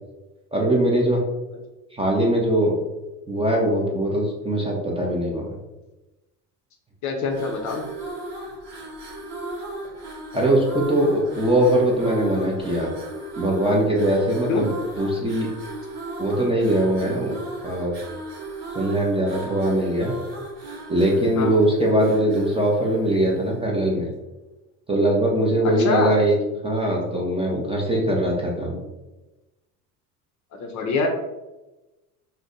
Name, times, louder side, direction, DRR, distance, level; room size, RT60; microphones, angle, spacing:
voice 1, 0.5-1.2 1.9-2.8 3.3-5.6 10.3-12.9 13.4-15.5 16.2-17.4 17.6-17.9 18.7-20.1 20.9-24.1 24.9-26.3 26.6-28.8, right 1 dB, 10° right, -2 dB, 0.5 m, -21 dB
voice 2, 7.0-7.9 14.5-14.7 21.4-21.6 25.8-26.2 30.6-31.1, left 4 dB, 35° left, 2 dB, 0.6 m, -24 dB
sound 1, 7.2-23.7, right 2 dB, 45° right, 1.0 m, -36 dB
2.5 x 2.2 x 3.7 m, 1.0 s
hypercardioid pair, 80°, 48 cm